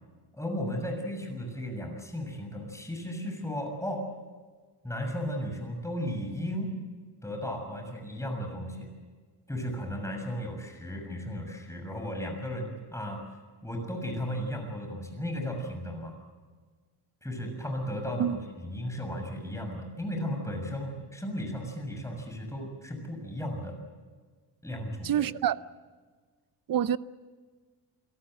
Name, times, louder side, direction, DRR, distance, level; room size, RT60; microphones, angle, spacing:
voice 1, 0.3-4.1 4.8-6.8 7.2-8.9 9.5-13.3 13.6-16.2 17.2-23.8 24.6-25.3, equal, 5° left, 6.7 m, -35 dB
voice 2, 25.0-25.6 26.7-27.0, right 10 dB, 45° right, 0.7 m, -26 dB
28.5 x 18.0 x 7.9 m
cardioid pair, 115°, 47 cm